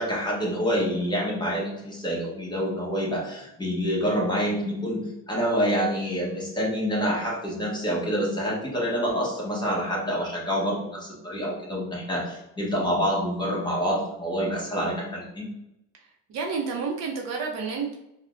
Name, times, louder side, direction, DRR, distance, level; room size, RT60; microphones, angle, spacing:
voice 1, 0.0-15.4, equal, 15° left, -4 dB, 0.9 m, -27 dB
voice 2, 16.3-17.9, right 5 dB, 50° right, 0 dB, 0.6 m, -29 dB
3.3 x 2.1 x 2.4 m, 0.87 s
cardioid pair, 120°, 34 cm